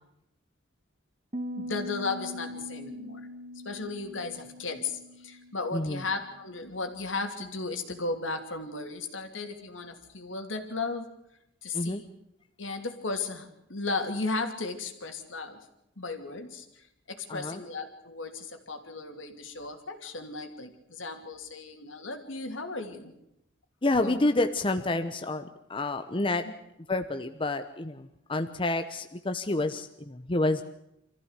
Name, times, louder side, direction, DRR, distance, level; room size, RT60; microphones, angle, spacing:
Piano, 1.3-6.9, equal, 30° right, 1.6 m, -42 dB
voice 1, 1.6-3.3 3.6-11.1 11.6-12.0 12.6-15.6 16.0-23.1 24.0-24.2, left 3 dB, 75° left, 6 dB, 2.9 m, -35 dB
voice 2, 5.7-6.0 11.7-12.0 17.3-17.6 23.8-26.4 26.9-30.6, left 2 dB, 25° left, 8 dB, 0.9 m, -29 dB
25.5 x 15.0 x 8.2 m, 0.82 s
head